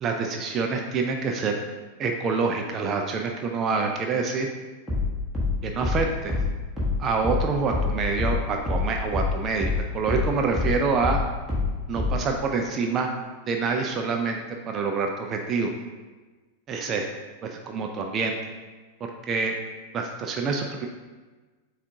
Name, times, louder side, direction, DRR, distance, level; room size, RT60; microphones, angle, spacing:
voice 1, 0.0-1.6 2.0-4.5 5.6-6.3 7.0-11.2 11.9-13.1 13.5-15.7 16.7-17.0 17.4-18.4 19.3-19.6 19.9-20.9, right 4 dB, 30° right, 3 dB, 0.4 m, -26 dB
sound 1, 4.9-9.8 10.1-12.3, left 3 dB, 5° left, 1.4 m, -26 dB
6.8 x 2.4 x 2.7 m, 1.3 s
figure-of-eight pair, 90°, 0 cm